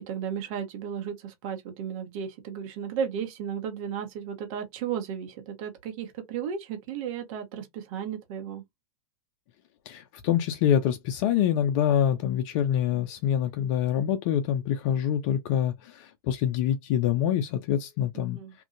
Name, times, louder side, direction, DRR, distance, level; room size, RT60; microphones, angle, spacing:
voice 1, 0.0-8.6 18.1-18.5, right 8 dB, 55° right, 1.3 m, -34 dB
voice 2, 9.9-18.4, left 10 dB, 50° left, 0.5 m, -25 dB
2.8 x 2.6 x 2.5 m
hypercardioid pair, 105°, 20 cm